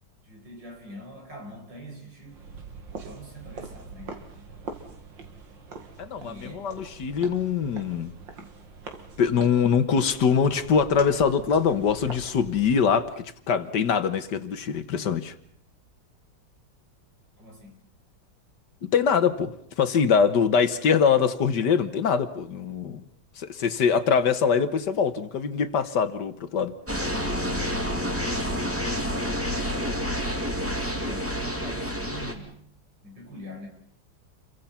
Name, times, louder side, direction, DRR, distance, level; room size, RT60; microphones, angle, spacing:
voice 1, 0.2-2.4 3.0-4.3 6.2-6.7 17.4-17.9 29.8-30.2 30.5-32.6 33.0-33.7, equal, 70° right, 2 dB, 6.0 m, -43 dB
sound 1, 2.2-13.1, right 4 dB, 90° right, 2.9 m, -43 dB
voice 2, 6.0-8.1 9.2-15.3 18.8-23.0 23.4-26.7, left 6 dB, 70° left, 12 dB, 1.8 m, -23 dB
sound 2, 26.9-32.3, equal, 5° right, 2.7 m, -28 dB
29.0 x 23.5 x 5.8 m, 0.62 s
omnidirectional pair, 2.0 m